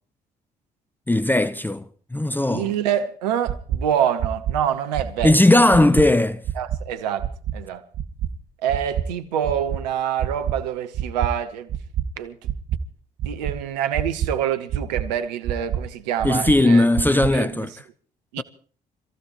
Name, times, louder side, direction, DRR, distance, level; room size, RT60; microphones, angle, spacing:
voice 1, 1.1-1.8 2.1-2.7 5.2-6.4 16.2-17.7 18.4-18.5, left 1 dB, 10° left, 0.7 m, -17 dB
voice 2, 2.5-5.7 6.6-7.8 8.6-11.7 12.2-12.4 13.2-16.8 17.3-17.7 18.3-18.4, right 9 dB, 80° right, 0.9 m, -26 dB
sound 1, 3.5-3.8 4.2-4.5 4.9-5.3 5.7-6.0 6.4-6.8 7.2-7.5 7.9-8.3 8.7-9.0 9.4-9.8 10.2-10.5 10.9-11.3 11.7-12.0 12.4-12.8 13.2-13.5 13.9-14.3 14.7-15.0 15.4-15.8 16.2-16.5 16.9-17.3, right 11 dB, 60° right, 1.1 m, -25 dB
26.0 x 15.0 x 3.0 m
figure-of-eight pair, 45°, 21 cm